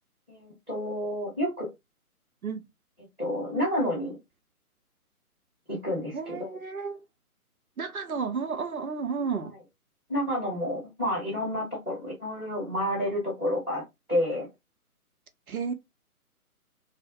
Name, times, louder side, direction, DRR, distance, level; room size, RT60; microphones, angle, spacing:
voice 1, 0.3-1.7 3.2-4.2 5.7-6.6 10.1-13.8 14.1-14.5, left 1 dB, ahead, 0.8 m, -29 dB
voice 2, 6.1-7.0 7.8-9.5 15.5-15.7, right 5 dB, 70° right, 0.6 m, -32 dB
2.4 x 2.0 x 2.7 m
figure-of-eight pair, 145°, 45 cm